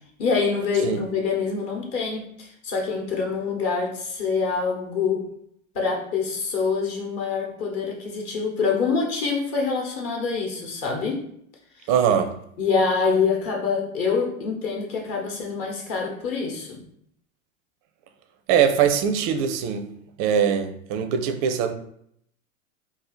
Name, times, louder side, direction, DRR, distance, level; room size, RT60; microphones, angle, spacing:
voice 1, 0.2-5.2 5.7-11.2 12.6-16.8, left 5 dB, 35° left, 1.0 m, -25 dB
voice 2, 11.9-12.3 18.5-19.9 20.2-21.7, right 8 dB, 40° right, 0.4 m, -22 dB
2.7 x 2.4 x 4.0 m
hypercardioid pair, 95°, 40 cm